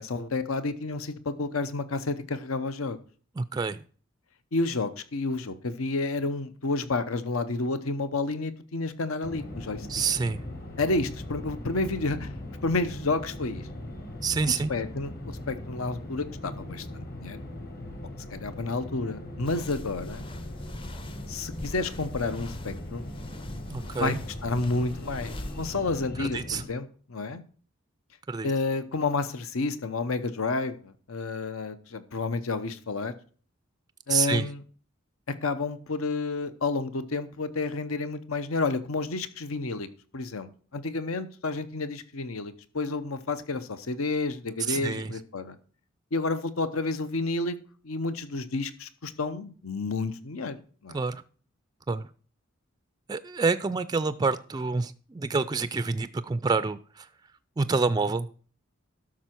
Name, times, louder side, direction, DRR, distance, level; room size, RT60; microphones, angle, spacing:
voice 1, 0.0-3.0 4.5-9.9 10.8-12.3 12.6-13.7 14.7-17.4 18.3-20.3 21.3-23.1 24.0-24.2 24.4-27.4 28.4-33.1 34.1-34.6 35.3-39.9 40.1-45.6 46.1-47.6 47.8-50.6 50.8-51.0, left 3 dB, 80° left, 12 dB, 0.9 m, -30 dB
voice 2, 3.4-3.8 9.9-10.4 14.2-14.7 23.7-24.2 26.2-26.6 28.3-28.5 34.1-34.5 44.7-45.1 50.9-51.2 51.9-52.1 53.1-57.1 57.6-58.3, right 4 dB, 20° right, 13 dB, 0.3 m, -27 dB
sound 1, 9.2-26.7, left 1 dB, 50° left, 2.1 m, -40 dB
sound 2, 19.4-25.7, left 1 dB, 25° left, 0.6 m, -43 dB
12.5 x 6.1 x 4.4 m, 0.42 s
head